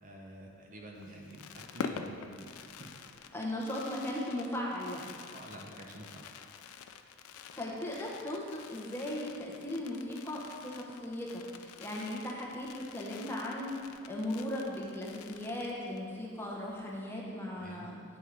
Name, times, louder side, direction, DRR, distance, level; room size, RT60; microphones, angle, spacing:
voice 1, 0.0-3.0 5.3-6.3 17.6-17.9, right 1 dB, 35° right, -1 dB, 0.6 m, -48 dB
Fireworks, 1.0-16.1 16.4-16.5 16.7-17.0, left 6 dB, 80° left, 0.3 m, -47 dB
voice 2, 3.3-5.1 7.6-13.7 14.1-18.0, left 1 dB, 10° left, -4 dB, 0.8 m, -37 dB
8.4 x 3.5 x 4.7 m, 2.3 s
head